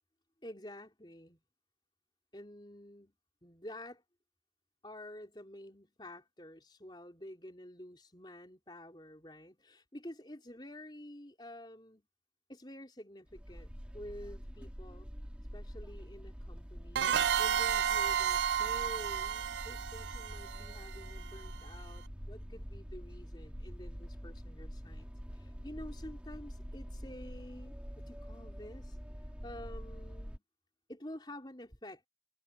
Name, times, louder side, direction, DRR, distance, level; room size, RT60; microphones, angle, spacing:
voice 1, 0.4-1.4 2.3-3.1 3.4-4.0 4.8-12.1 12.5-15.1 15.5-29.0 29.4-30.4 30.9-32.1, left 1 dB, 25° left, 4.7 m, -49 dB
sound 1, 13.3-30.4, equal, 5° right, 4.2 m, -46 dB
sound 2, 16.9-21.5, right 8 dB, 75° right, 0.5 m, -32 dB
head